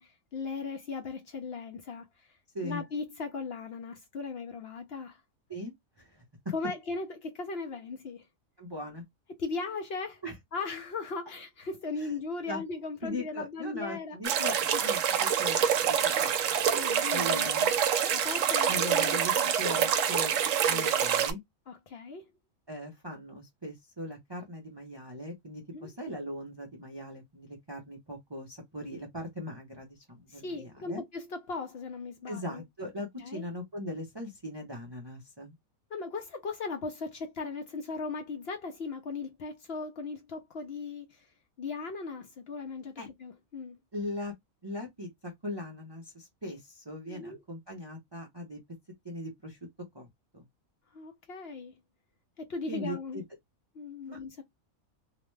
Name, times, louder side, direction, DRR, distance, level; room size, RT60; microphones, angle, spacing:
voice 1, 0.0-2.1 2.6-5.2 6.5-8.3 9.4-10.2 10.5-14.4 14.7-14.8 16.7-17.7 18.1-19.9 20.7-20.9 21.7-22.2 25.7-25.9 30.3-32.6 33.2-33.4 35.9-41.3 41.6-43.8 47.1-47.4 50.9-51.7 52.4-53.2 53.7-54.4, left 4 dB, 60° left, 0.7 m, -38 dB
voice 2, 5.5-6.2 8.6-9.0 10.2-10.4 12.0-12.1 12.5-12.6 13.0-16.6 17.1-17.7 18.7-20.3 20.7-21.4 22.7-31.0 32.3-35.5 43.0-43.1 43.9-44.3 44.6-48.6 49.0-49.6 49.9-50.1 50.3-50.4 52.7-53.2 54.1-54.2, left 1 dB, 30° right, 0.5 m, -40 dB
sound 1, 14.2-21.3, right 8 dB, 70° right, 0.9 m, -26 dB
2.8 x 2.1 x 3.1 m
omnidirectional pair, 1.5 m